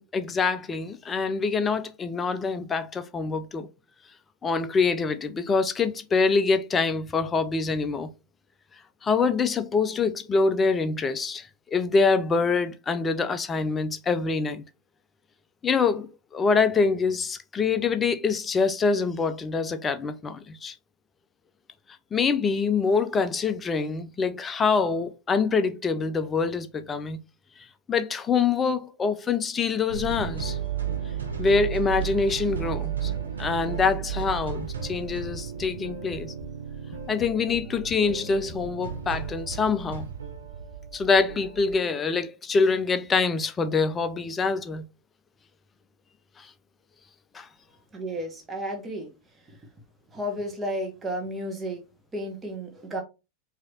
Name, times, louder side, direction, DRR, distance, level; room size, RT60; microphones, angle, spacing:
voice 1, 0.0-3.7 4.4-8.1 9.0-14.6 15.6-20.7 22.1-27.2 27.9-30.6 31.4-33.1 33.4-36.3 37.1-40.1 40.9-44.9 46.4-46.5 47.3-47.5, left 4 dB, 20° left, 0.5 m, -25 dB
sound 1, 29.9-41.7, right 8 dB, 70° right, 0.9 m, -33 dB
voice 2, 47.9-49.7 50.1-51.8 52.1-53.0, equal, 15° right, 1.3 m, -33 dB
4.8 x 2.8 x 2.8 m
figure-of-eight pair, 90°, 0 cm